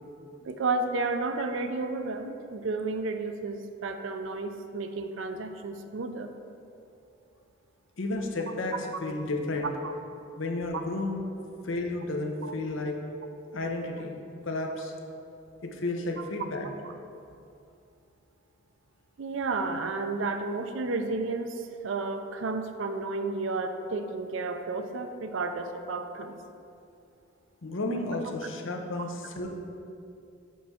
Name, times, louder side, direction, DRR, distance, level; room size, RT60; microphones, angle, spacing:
voice 1, 0.4-6.3 9.6-9.9 12.4-12.5 19.2-26.3, right 3 dB, 70° right, 8 dB, 0.5 m, -32 dB
voice 2, 8.0-8.8 9.0-9.7 10.4-11.2 11.6-13.0 13.5-14.2 14.4-14.9 15.6-16.7 27.6-29.5, left 2 dB, 75° left, 2 dB, 0.7 m, -32 dB
7.4 x 4.7 x 4.2 m, 2.6 s
head